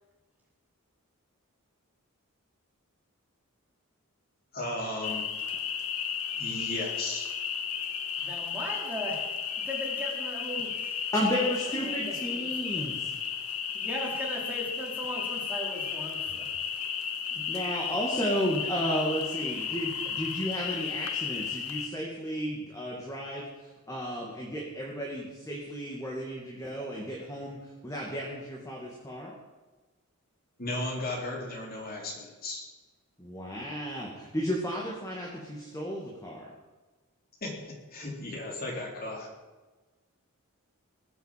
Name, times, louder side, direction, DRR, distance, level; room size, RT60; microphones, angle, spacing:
voice 1, 4.5-5.3 6.4-7.3 30.6-32.6 37.4-39.3, left 1 dB, 40° left, -1 dB, 3.4 m, -35 dB
sound 1, 5.0-21.9, left 7 dB, 85° left, 1.6 m, -34 dB
voice 2, 8.2-9.3 9.6-11.1 11.5-12.9 13.7-16.5, equal, 5° right, -3 dB, 3.8 m, -38 dB
voice 3, 11.1-13.1 17.3-23.5 23.9-27.6 27.8-29.3 33.2-36.5, equal, 15° left, -3 dB, 2.4 m, -33 dB
20.0 x 8.0 x 7.7 m, 1.2 s
head